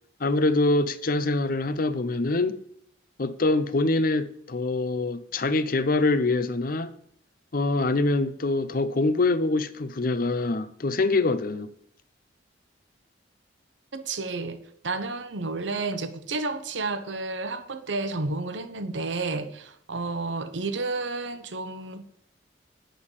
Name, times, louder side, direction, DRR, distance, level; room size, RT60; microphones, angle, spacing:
voice 1, 0.2-2.6 3.2-6.9 7.5-11.7, left 2 dB, 50° left, 0.7 m, -24 dB
voice 2, 13.9-22.1, right 3 dB, 75° right, 0.9 m, -31 dB
9.2 x 6.4 x 7.2 m
head